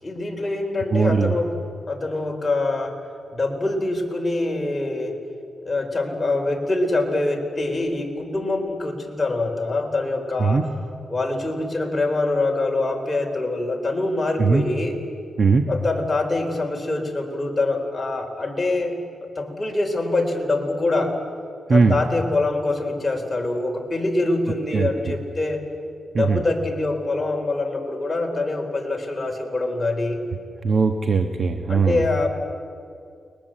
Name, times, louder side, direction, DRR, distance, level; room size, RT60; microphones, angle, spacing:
voice 1, 0.0-1.5 1.9-3.0 3.3-5.2 5.6-10.6 11.1-15.0 15.7-19.0 19.4-21.2 21.7-25.6 26.1-30.2 31.7-32.3, left 2 dB, 25° left, 2 dB, 4.1 m, -24 dB
voice 2, 0.9-1.3 10.4-10.7 14.4-14.6 15.4-15.7 21.7-22.0 24.7-24.9 26.1-26.4 30.6-32.0, right 4 dB, 50° right, 6 dB, 1.2 m, -19 dB
30.0 x 22.0 x 7.7 m, 2.4 s
cardioid pair, 90°, 0 cm